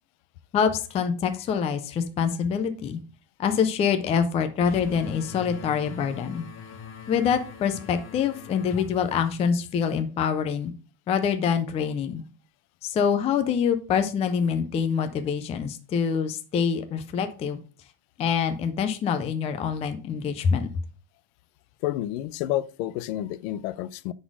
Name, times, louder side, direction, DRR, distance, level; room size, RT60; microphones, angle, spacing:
voice 1, 0.5-3.0 3.4-6.4 7.1-10.7 11.1-12.2 12.8-17.6 18.2-20.7, left 7 dB, 15° left, 0.3 m, -25 dB
sound 1, 4.6-10.0, left 7 dB, 35° left, 1.0 m, -42 dB
voice 2, 21.8-24.1, left 14 dB, 75° left, 0.6 m, -30 dB
10.0 x 4.1 x 4.7 m
cardioid pair, 165°, 44 cm